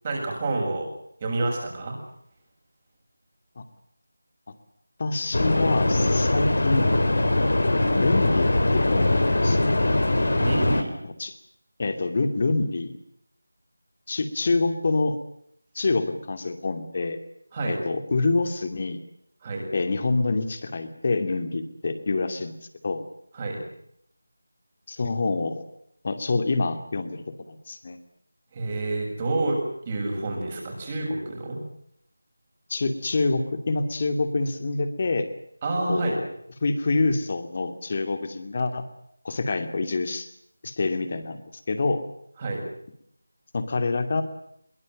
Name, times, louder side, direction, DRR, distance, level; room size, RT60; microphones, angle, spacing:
voice 1, 0.0-0.9 1.2-1.9 10.4-10.9 17.5-17.8 19.4-19.7 23.3-23.6 28.5-31.6 35.6-36.2 42.4-42.6, right 2 dB, 20° right, 0 dB, 7.3 m, -28 dB
voice 2, 5.0-6.9 7.7-9.7 11.0-11.3 11.8-12.9 14.1-15.2 15.7-17.2 17.7-19.0 19.7-22.6 22.8-23.0 24.9-25.6 26.0-28.0 32.7-35.3 35.9-36.2 36.6-38.8 39.2-40.3 40.6-41.4 41.7-42.0 43.5-44.2, left 3 dB, 35° left, 9 dB, 2.7 m, -26 dB
sound 1, 5.3-10.8, left 2 dB, 55° left, 3.9 m, -22 dB
23.5 x 23.0 x 7.7 m, 0.70 s
figure-of-eight pair, 165°, 0 cm